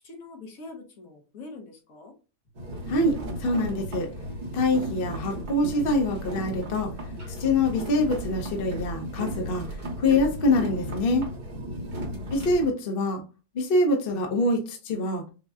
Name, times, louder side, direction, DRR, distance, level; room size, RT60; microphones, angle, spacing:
voice 1, 0.0-2.1 12.1-12.4, left 3 dB, 60° left, 2 dB, 1.3 m, -44 dB
sound 1, 2.5-12.7, equal, 35° right, 0.9 m, -35 dB
voice 2, 2.9-4.1 4.5-6.9 7.3-11.2 12.3-13.2 13.5-15.2, left 2 dB, 45° left, 2 dB, 0.9 m, -25 dB
6.2 x 2.2 x 2.5 m, 0.32 s
omnidirectional pair, 1.8 m